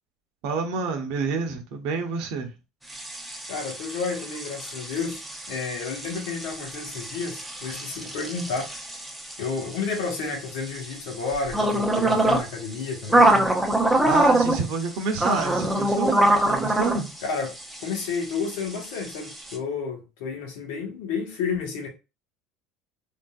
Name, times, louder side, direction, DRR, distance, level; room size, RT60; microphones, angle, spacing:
voice 1, 0.4-2.5 14.0-17.1, right 4 dB, 70° right, 0.8 m, -28 dB
sound 1, 2.9-19.6, right 1 dB, 5° right, 0.6 m, -25 dB
voice 2, 3.5-8.7 9.4-13.5 17.2-17.5 17.8-21.9, left 5 dB, 90° left, 1.3 m, -31 dB
3.7 x 2.6 x 2.3 m
cardioid pair, 140°, 0 cm